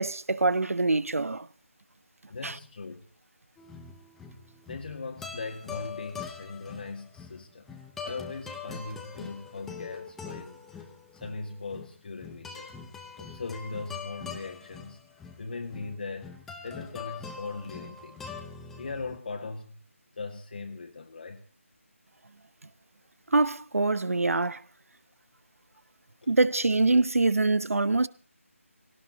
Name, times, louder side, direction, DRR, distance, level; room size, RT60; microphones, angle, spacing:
voice 1, 0.0-1.5 2.4-2.5 23.3-24.6 26.3-28.1, right 3 dB, 75° right, 0.9 m, -24 dB
voice 2, 2.3-3.1 4.7-7.7 8.0-10.9 11.1-12.7 13.2-15.0 15.4-18.3 18.8-19.8 20.2-21.4 26.2-26.4, left 3 dB, 40° left, 1.8 m, -39 dB
sound 1, 3.6-19.2, left 6 dB, 5° left, 0.8 m, -43 dB
18.5 x 18.0 x 4.1 m
figure-of-eight pair, 165°, 8 cm